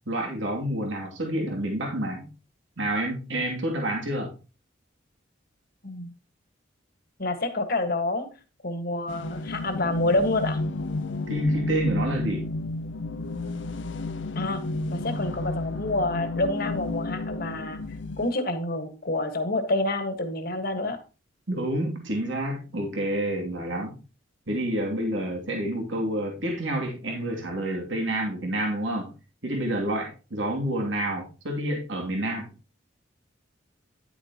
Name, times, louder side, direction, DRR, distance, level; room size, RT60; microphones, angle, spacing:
voice 1, 0.1-2.3 2.8-4.3 11.3-12.5 21.5-24.0 24.5-29.1 29.4-32.5, right 1 dB, 75° right, 0 dB, 2.5 m, -29 dB
voice 2, 7.2-8.3 8.6-10.6 14.3-14.6 14.9-17.8 18.2-21.0, left 2 dB, 50° left, 7 dB, 1.6 m, -28 dB
sound 1, 9.1-18.3, left 2 dB, 70° left, 0.6 m, -31 dB
10.5 x 8.4 x 2.9 m, 0.32 s
head